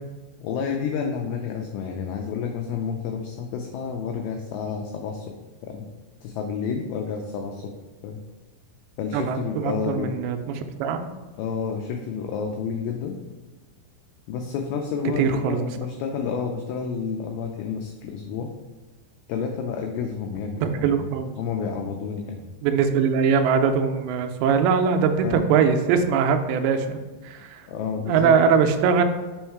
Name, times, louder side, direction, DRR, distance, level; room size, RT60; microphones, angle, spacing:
voice 1, 0.4-5.3 5.6-5.9 6.2-7.7 8.0-8.2 9.0-10.2 11.4-13.2 14.3-18.5 19.3-21.1 21.4-22.4 25.2-25.5 27.7-28.3, left 6 dB, 90° left, 3 dB, 2.2 m, -30 dB
voice 2, 9.1-11.1 15.2-15.6 20.6-21.3 22.6-27.6 28.1-29.0, right 6 dB, 85° right, 6 dB, 2.7 m, -22 dB
5.5 x 4.4 x 4.5 m, 1.3 s
omnidirectional pair, 5.0 m